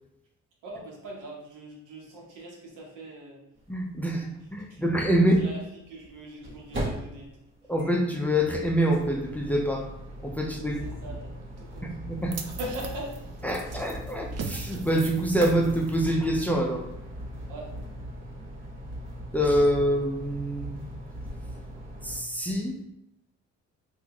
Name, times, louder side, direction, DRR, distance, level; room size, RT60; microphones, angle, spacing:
voice 1, 0.6-3.4 4.1-4.2 4.7-5.1 5.4-7.3 10.8-12.1 12.4-13.2 13.6-13.9 17.5-17.7, right 1 dB, 90° right, -2 dB, 1.1 m, -41 dB
sound 1, 3.6-3.7 3.9-4.0 5.9-22.2, equal, 40° right, 1.2 m, -39 dB
voice 2, 3.7-4.3 4.5-5.4 7.7-9.8 10.2-10.8 12.1-12.4 13.4-16.8 19.3-20.8 22.0-22.8, equal, 5° left, 0 dB, 0.5 m, -25 dB
sound 2, 12.3-18.6, right 5 dB, 55° right, 0.5 m, -41 dB
3.0 x 2.6 x 3.5 m, 0.82 s
cardioid pair, 90°, 30 cm